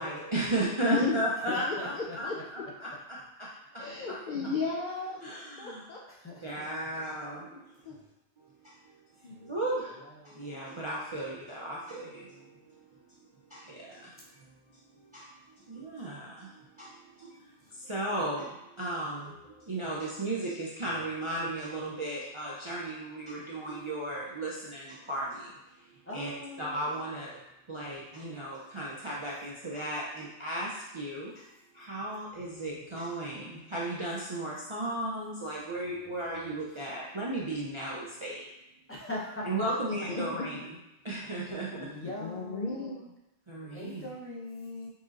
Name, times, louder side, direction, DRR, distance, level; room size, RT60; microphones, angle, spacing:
voice 1, 0.0-3.5 3.7-4.2 5.2-5.8 6.4-7.9 8.4-9.0 9.4-13.0 13.5-14.5 15.0-26.3 26.6-27.4 27.7-38.5 39.4-40.7 41.0-41.9 43.5-44.0, right 1 dB, 40° right, -6 dB, 0.4 m, -36 dB
voice 2, 0.8-1.2 1.7-2.4 3.8-5.3 5.6-6.0 7.5-7.6 7.9-8.0 9.2-9.3 39.9-40.5 42.0-43.0, left 4 dB, 60° left, -3 dB, 0.5 m, -34 dB
voice 3, 1.5-2.2 6.1-6.7 9.3-9.6 9.8-10.5 26.1-26.9 35.7-36.6 38.9-40.0 41.2-43.1 43.7-44.9, left 2 dB, 15° left, -6 dB, 0.6 m, -42 dB
4.2 x 3.8 x 2.4 m, 0.92 s
omnidirectional pair, 1.2 m